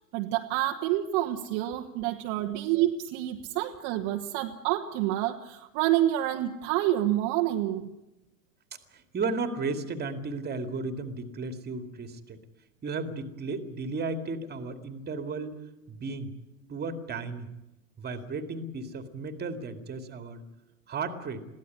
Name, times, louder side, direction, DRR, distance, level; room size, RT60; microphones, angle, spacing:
voice 1, 0.1-7.9, right 13 dB, 40° right, 4 dB, 1.3 m, -28 dB
voice 2, 8.9-12.4 12.8-15.6 15.9-16.3 16.7-17.5 18.0-20.4 20.9-21.5, right 3 dB, 20° right, 7 dB, 2.3 m, -34 dB
22.0 x 16.0 x 9.9 m, 0.98 s
figure-of-eight pair, 90°, 45 cm